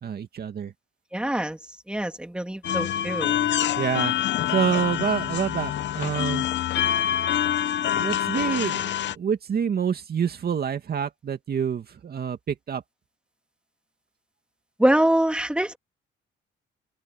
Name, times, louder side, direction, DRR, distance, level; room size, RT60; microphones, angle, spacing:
voice 1, 0.0-0.7 3.8-4.1 4.5-6.5 8.0-12.8, right 7 dB, 50° right, 2.4 m, -27 dB
voice 2, 1.1-1.6 1.9-3.4 14.8-15.8, right 1 dB, 5° right, 3.0 m, -24 dB
sound 1, 2.6-9.1, left 11 dB, 65° left, 1.0 m, -26 dB
open air
cardioid pair, 90°, 20 cm